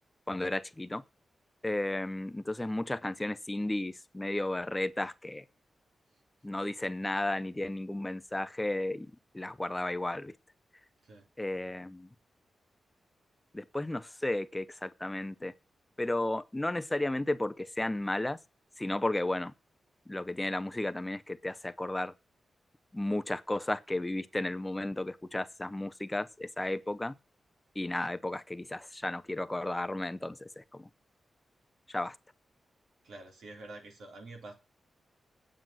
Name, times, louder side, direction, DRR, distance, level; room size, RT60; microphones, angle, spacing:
voice 1, 0.3-1.0 1.6-5.4 6.4-9.1 9.3-10.3 11.4-12.1 13.5-15.5 16.0-18.4 18.8-19.5 20.1-22.1 22.9-27.1 27.8-30.9 31.9-32.2, left 1 dB, 10° left, 0.6 m, -33 dB
voice 2, 33.0-34.5, right 2 dB, 80° right, 4.1 m, -48 dB
9.2 x 7.6 x 7.8 m
wide cardioid pair, 150°, 0 cm